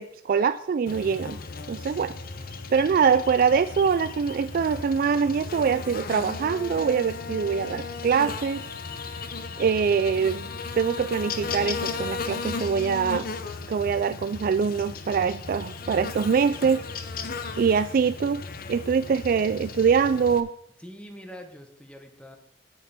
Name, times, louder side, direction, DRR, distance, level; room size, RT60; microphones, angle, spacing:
voice 1, 0.0-1.4 1.7-2.1 2.7-8.7 9.6-10.5 10.8-13.3 13.7-16.8 17.6-18.4 18.7-20.5, right 6 dB, 50° right, 13 dB, 0.3 m, -24 dB
Buzz, 0.9-20.4, left 4 dB, 55° left, 0.8 m, -35 dB
voice 2, 20.8-22.4, equal, 5° left, 5 dB, 1.2 m, -44 dB
9.4 x 8.7 x 4.3 m, 0.73 s
head